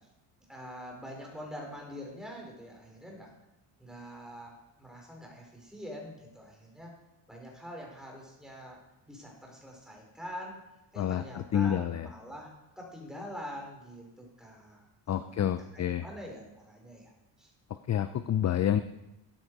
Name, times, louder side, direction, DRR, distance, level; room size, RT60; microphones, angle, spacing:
voice 1, 0.5-3.3 3.8-6.9 7.3-8.8 9.1-10.6 10.9-17.1 17.4-17.5, equal, ahead, -1 dB, 4.6 m, -45 dB
voice 2, 11.0-12.1 15.1-16.0 17.9-18.8, left 10 dB, 35° left, 11 dB, 0.6 m, -28 dB
13.5 x 9.2 x 4.8 m, 0.96 s
cardioid pair, 105°, 45 cm